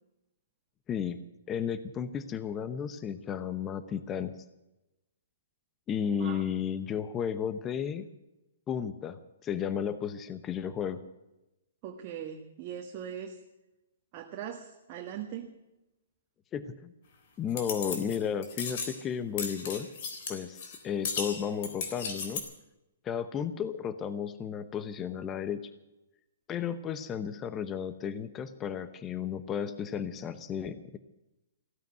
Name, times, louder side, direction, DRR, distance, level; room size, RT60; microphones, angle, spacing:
voice 1, 0.9-1.2 1.5-4.3 5.9-8.0 8.7-11.0 16.5-16.9 17.4-19.9 20.3-22.4 23.0-25.6 26.5-31.0, left 8 dB, 20° left, 13 dB, 0.9 m, -33 dB
voice 2, 11.8-13.4 14.1-15.5, right 9 dB, 35° right, 2 dB, 1.7 m, -40 dB
sound 1, 17.5-18.2 18.4-19.0 19.4-20.8 21.0-22.4, left 5 dB, 50° left, 3.6 m, -36 dB
16.0 x 9.1 x 9.3 m, 0.95 s
hypercardioid pair, 135°, 0 cm